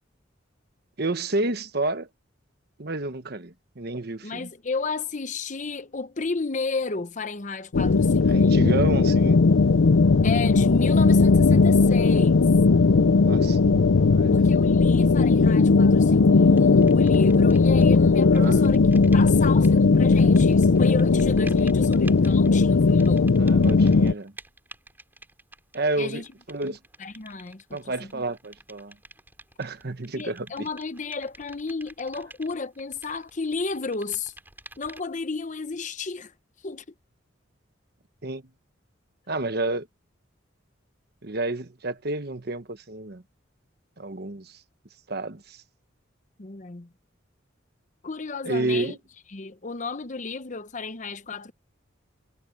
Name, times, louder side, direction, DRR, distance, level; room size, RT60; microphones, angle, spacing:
voice 1, 1.0-2.1 2.8-4.5 8.3-9.4 13.2-14.3 18.3-18.6 21.4-21.5 23.4-24.3 25.7-26.2 26.5-26.8 27.7-28.9 29.6-30.7 38.2-38.4 39.3-39.9 41.2-43.2 44.0-44.5 45.1-45.6 48.4-49.0, right 2 dB, 55° right, 1.2 m, -30 dB
voice 2, 4.2-8.7 10.2-12.4 14.3-23.4 26.0-26.3 26.6-28.2 30.1-34.3 34.8-36.3 36.6-36.8 46.4-46.9 48.0-49.0 49.3-51.5, left 4 dB, 40° left, 0.9 m, -33 dB
sound 1, 7.7-24.1, left 4 dB, 80° left, 0.6 m, -18 dB
sound 2, 16.6-18.0 18.2-35.3, right 2 dB, 10° right, 4.3 m, -50 dB
head